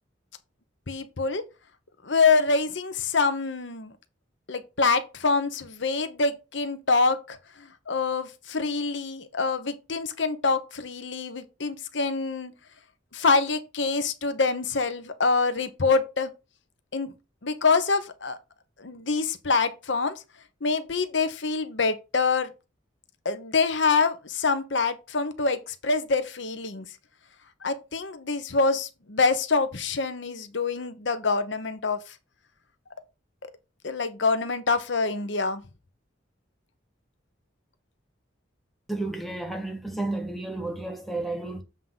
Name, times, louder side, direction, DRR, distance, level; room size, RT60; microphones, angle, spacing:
voice 1, 0.9-1.4 2.0-3.9 4.5-12.5 13.1-16.3 16.9-17.1 17.4-18.4 18.8-20.2 20.6-22.5 23.2-26.8 27.6-32.1 33.4-33.5 33.8-35.6, left 4 dB, 70° left, 0.9 m, -25 dB
voice 2, 38.9-41.6, right 2 dB, ahead, 1.0 m, -32 dB
7.5 x 3.7 x 5.5 m
head